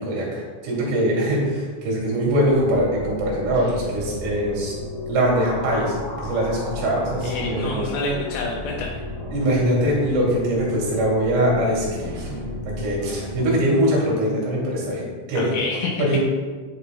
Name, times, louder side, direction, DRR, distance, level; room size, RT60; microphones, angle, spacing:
voice 1, 0.0-4.8 5.1-7.8 9.3-12.3 12.8-15.0 15.3-15.5 16.0-16.2, right 1 dB, 75° right, -4 dB, 4.9 m, -22 dB
sound 1, 2.0-13.5, left 2 dB, 35° left, 1.9 m, -34 dB
sound 2, 3.5-4.8 6.7-7.8 9.4-10.5 12.0-14.7, right 2 dB, 45° right, 2.5 m, -41 dB
voice 2, 7.2-9.0 15.4-16.0, left 3 dB, 75° left, -2 dB, 3.0 m, -28 dB
9.9 x 9.7 x 2.2 m, 1.5 s
omnidirectional pair, 6.0 m